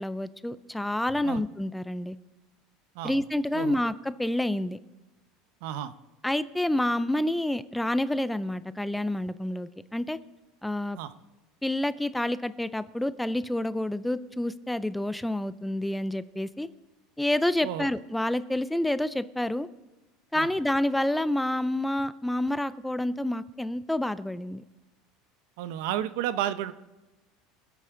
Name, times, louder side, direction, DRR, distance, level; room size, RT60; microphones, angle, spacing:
voice 1, 0.0-2.2 3.0-4.8 6.2-10.2 10.6-11.0 11.6-16.7 17.2-19.7 20.3-24.6, left 1 dB, 5° left, 14 dB, 0.4 m, -28 dB
voice 2, 5.6-5.9 10.9-11.1 17.6-17.9 20.3-20.5 25.6-26.7, right 11 dB, 70° right, 12 dB, 0.8 m, -32 dB
25.0 x 8.4 x 3.8 m, 1.1 s
supercardioid pair, 150°, 0 cm